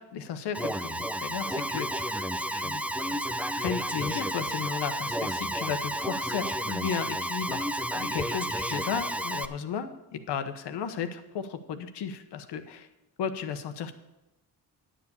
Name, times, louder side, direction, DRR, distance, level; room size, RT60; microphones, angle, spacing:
voice 1, 0.0-2.1 2.5-2.8 3.1-3.2 3.5-12.8 13.2-13.9, left 7 dB, 80° left, 9 dB, 1.0 m, -34 dB
Alarm, 0.5-9.5, right 1 dB, 5° right, 0.4 m, -31 dB
10.0 x 7.5 x 6.9 m, 0.96 s
cardioid pair, 70°, 40 cm